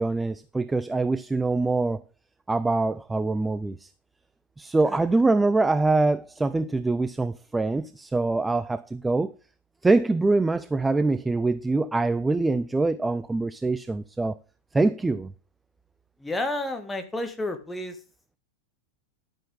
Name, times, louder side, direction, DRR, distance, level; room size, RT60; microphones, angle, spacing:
voice 1, 0.0-2.0 2.5-3.9 4.6-9.3 9.8-14.4 14.7-15.3, right 3 dB, 10° right, 0.5 m, -24 dB
voice 2, 16.2-18.0, left 1 dB, 10° left, 2.1 m, -31 dB
11.5 x 8.9 x 3.7 m
figure-of-eight pair, 90°, 0 cm